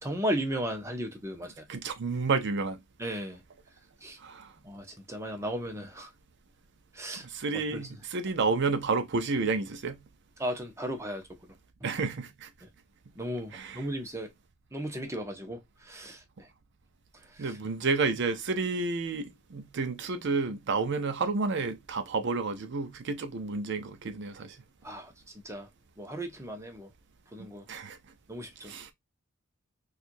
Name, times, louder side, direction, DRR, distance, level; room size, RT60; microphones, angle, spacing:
voice 1, 0.0-1.6 3.0-3.4 4.0-4.2 4.6-6.1 6.9-7.2 7.7-7.9 10.4-11.2 13.2-14.3 14.7-15.6 15.9-16.2 17.4-17.6 24.8-25.1 25.4-25.7 26.0-26.9 27.3-27.6 28.3-28.7, equal, 15° right, 0.8 m, -35 dB
voice 2, 1.7-2.8 4.2-4.5 7.1-10.0 11.8-12.5 13.5-13.9 17.4-24.6 27.7-28.0 28.6-28.9, right 4 dB, 55° right, 0.5 m, -30 dB
4.4 x 2.4 x 2.6 m
head